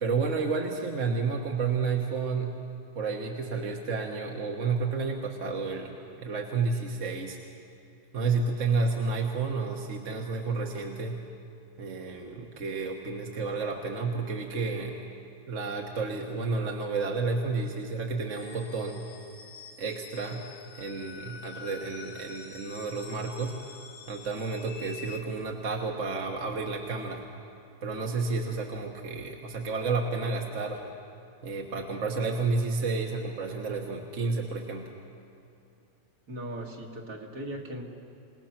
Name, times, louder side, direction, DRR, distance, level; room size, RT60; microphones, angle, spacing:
voice 1, 0.0-2.5 3.0-7.4 8.1-11.2 11.8-15.0 15.5-19.0 19.8-20.4 20.7-23.5 24.1-27.3 27.8-30.8 31.4-34.9, right 4 dB, 45° right, 1 dB, 1.6 m, -31 dB
sound 1, 18.3-25.2, left 6 dB, 85° left, 2.0 m, -47 dB
voice 2, 36.3-37.8, right 1 dB, 60° right, 0 dB, 2.7 m, -38 dB
27.5 x 18.5 x 5.9 m, 2.6 s
omnidirectional pair, 1.8 m